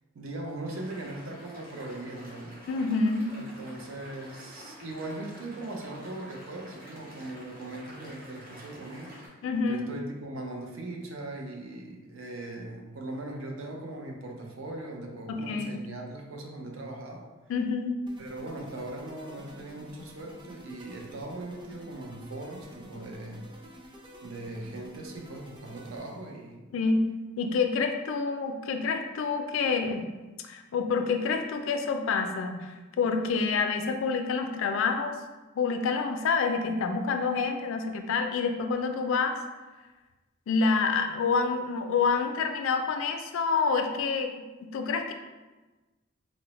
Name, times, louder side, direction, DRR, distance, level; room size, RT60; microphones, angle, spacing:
voice 1, 0.1-2.5 3.3-9.2 9.6-17.2 18.2-23.5 24.2-26.6, right 2 dB, 75° right, 1 dB, 0.5 m, -39 dB
sound 1, 0.6-9.3, equal, 45° right, 0.9 m, -49 dB
voice 2, 2.7-3.3 9.4-9.9 15.3-15.8 17.5-18.0 26.7-27.0 27.4-30.1 30.4-35.2 35.6-39.4 40.5-44.3 44.6-45.1, left 4 dB, 70° left, 6 dB, 0.3 m, -27 dB
sound 2, 18.1-26.4, equal, 25° right, 0.4 m, -49 dB
3.8 x 2.0 x 2.9 m, 1.2 s
head